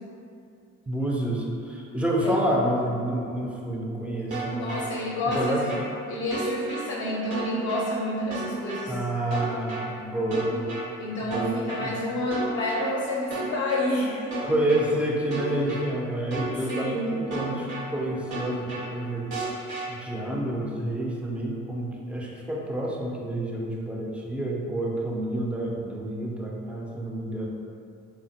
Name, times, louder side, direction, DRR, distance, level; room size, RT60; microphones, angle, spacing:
voice 1, 0.9-4.7 5.3-5.6 8.9-10.6 11.2-11.5 11.8-11.9 14.4-19.3 19.9-27.5, right 1 dB, 5° right, -3 dB, 0.4 m, -28 dB
sound 1, 4.3-4.8 5.3-5.8 6.3-6.8 7.3-7.8 8.3-8.8 9.3-9.8 10.3-10.8 11.3-11.8 12.3-12.8 13.3-13.8 14.3-14.8 15.3-15.8 16.3-16.8 17.3-17.8 18.3-18.8 19.3-19.8, right 2 dB, 90° right, 0.9 m, -33 dB
voice 2, 4.6-5.6 6.1-9.0 11.0-14.3 16.6-17.2, left 1 dB, 50° left, -5 dB, 0.5 m, -29 dB
3.2 x 2.1 x 2.6 m, 2.5 s
cardioid pair, 90°, 30 cm